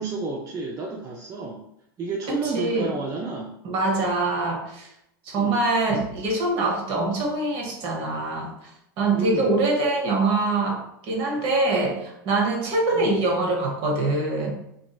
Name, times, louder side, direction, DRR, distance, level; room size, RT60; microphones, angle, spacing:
voice 1, 0.0-1.6 2.0-3.5 5.4-5.6 9.1-9.6 12.9-13.2, right 3 dB, 30° right, -1 dB, 0.4 m, -31 dB
voice 2, 2.3-2.9 3.6-4.9 5.2-8.7 9.0-14.6, right 2 dB, 45° right, 0 dB, 0.9 m, -24 dB
2.9 x 2.5 x 2.3 m, 0.78 s
hypercardioid pair, 105°, 12 cm